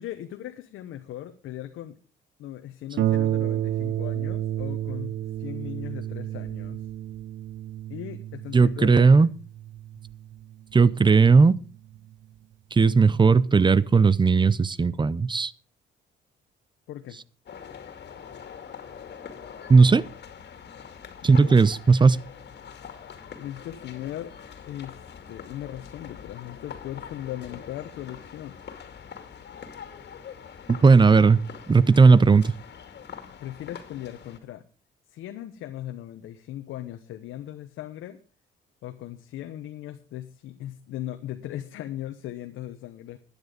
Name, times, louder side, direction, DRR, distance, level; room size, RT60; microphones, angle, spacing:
voice 1, 0.0-2.0 2.4-6.8 7.9-9.3 16.9-17.2 21.2-21.6 23.4-24.3 24.6-25.0 25.3-28.6 33.4-34.6 35.1-38.2 38.8-43.2, left 13 dB, 85° left, 1.1 m, -38 dB
Harp, 3.0-12.1 13.0-13.1 13.6-13.7, right 12 dB, 70° right, 0.7 m, -31 dB
voice 2, 8.5-9.3 10.7-11.6 12.7-15.5 19.7-20.1 21.2-22.2 30.7-31.4 31.7-32.5, right 4 dB, 25° right, 0.6 m, -17 dB
sound 1, 17.4-34.4, left 7 dB, 60° left, 2.5 m, -44 dB
12.5 x 10.0 x 5.1 m
cardioid pair, 90°, 20 cm